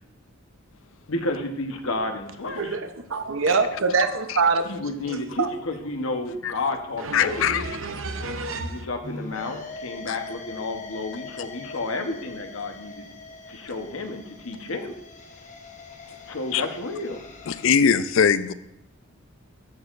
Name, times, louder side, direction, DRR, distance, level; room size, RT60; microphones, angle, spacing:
voice 1, 1.1-2.8 4.6-7.7 8.5-13.1 13.5-15.0 16.3-17.2, left 2 dB, 90° left, 5 dB, 1.1 m, -31 dB
voice 2, 2.6-4.7 5.4-5.5 7.1-7.2 7.4-7.5 7.8-8.8, right 4 dB, 75° right, 8 dB, 0.8 m, -25 dB
voice 3, 7.1-7.6 16.5-16.6 17.5-18.5, left 7 dB, 70° left, 14 dB, 0.4 m, -20 dB
sound 1, 9.0-17.7, left 3 dB, 35° left, 1.0 m, -42 dB
13.5 x 6.4 x 2.6 m, 0.81 s
head